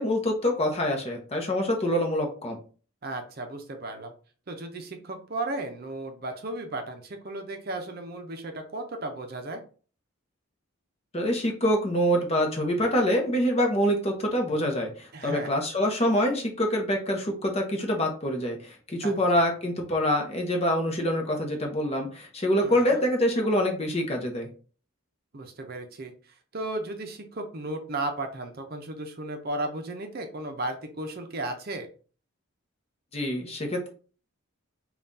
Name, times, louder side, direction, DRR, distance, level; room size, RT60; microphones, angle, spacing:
voice 1, 0.0-2.6 11.1-24.5 33.1-33.9, equal, 30° left, 2 dB, 0.8 m, -25 dB
voice 2, 3.0-4.1 4.5-9.6 15.1-15.5 19.0-19.1 22.6-23.0 25.3-26.1 26.5-31.9, right 2 dB, 45° right, 5 dB, 0.6 m, -35 dB
5.5 x 2.4 x 2.6 m, 0.39 s
head